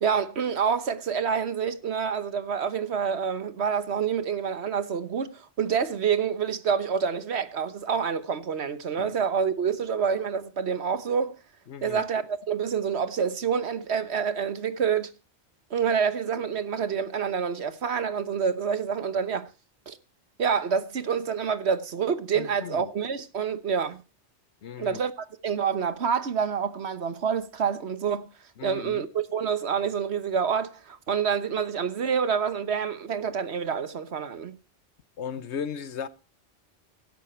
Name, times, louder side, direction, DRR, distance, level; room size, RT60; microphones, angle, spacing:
voice 1, 0.0-11.4 11.8-15.1 15.7-19.5 19.9-20.0 20.4-24.0 24.8-28.3 28.6-34.6, right 7 dB, 70° right, 1.4 m, -27 dB
voice 2, 11.7-12.1 22.3-22.9 24.6-25.0 28.6-29.0 35.2-36.1, left 7 dB, 85° left, 1.2 m, -36 dB
15.5 x 12.0 x 4.4 m
omnidirectional pair, 1.1 m